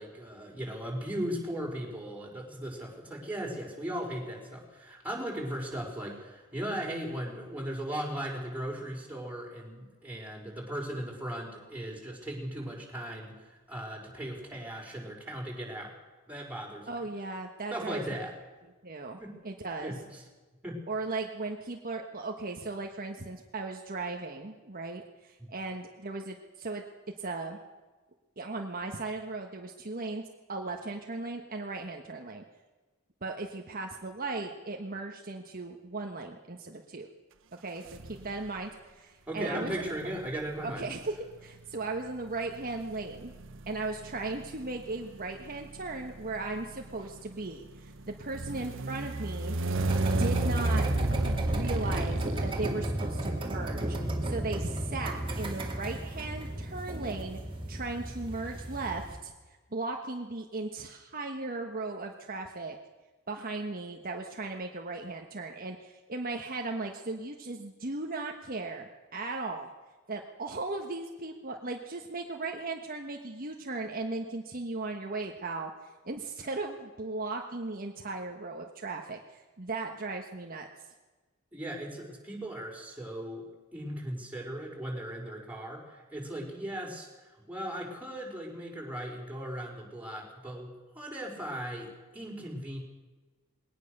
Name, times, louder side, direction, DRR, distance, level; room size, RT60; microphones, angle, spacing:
voice 1, 0.0-15.9 16.3-16.9 17.7-18.4 19.2-19.4 19.8-20.2 20.6-20.8 39.3-40.9 81.5-83.5 83.7-87.1 87.5-92.8, right 1 dB, 5° right, -2 dB, 5.3 m, -37 dB
voice 2, 16.9-18.0 18.8-19.2 19.4-19.9 20.9-26.8 27.2-27.6 28.4-30.2 30.5-32.4 33.2-37.1 37.5-39.9 40.6-43.3 43.7-49.6 50.2-50.9 51.5-57.4 57.7-59.3 59.7-62.8 63.3-69.7 70.1-80.9, right 3 dB, 45° right, 2 dB, 1.4 m, -37 dB
sound 1, 37.9-38.6 39.6-53.3, right 2 dB, 65° right, 1.2 m, -35 dB
sound 2, 49.7-59.2, right 1 dB, 25° right, 2.7 m, -33 dB
21.0 x 18.5 x 6.7 m, 1.3 s
head